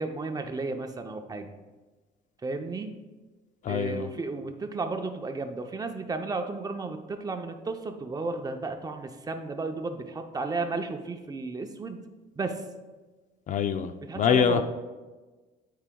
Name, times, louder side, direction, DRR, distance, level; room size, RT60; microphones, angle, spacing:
voice 1, 0.0-1.6 2.4-2.9 3.7-12.0 12.4-12.6 14.1-14.6, right 3 dB, 20° right, 5 dB, 0.6 m, -33 dB
voice 2, 3.6-4.1 13.5-14.6, left 8 dB, 45° left, 10 dB, 0.4 m, -25 dB
12.5 x 4.8 x 2.3 m, 1.3 s
cardioid pair, 110°, 17 cm